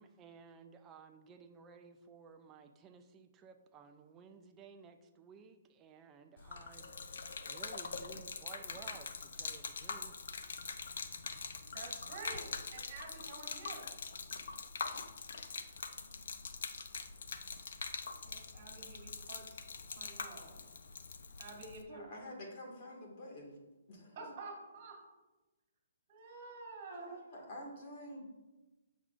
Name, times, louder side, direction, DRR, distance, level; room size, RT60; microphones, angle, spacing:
voice 1, 0.0-10.2, right 6 dB, 15° right, 6 dB, 0.5 m, -56 dB
Gurgling / Liquid, 6.4-21.8, left 5 dB, 65° left, 0.6 m, -44 dB
voice 2, 11.7-13.9 18.0-20.7 21.4-22.0 24.2-25.0 26.1-27.1, right 3 dB, 35° right, 0 dB, 2.4 m, -50 dB
voice 3, 21.9-23.6 23.9-24.2 26.9-28.3, equal, 35° left, -1 dB, 1.9 m, -48 dB
8.2 x 6.2 x 2.5 m, 1.1 s
hypercardioid pair, 160°, 0 cm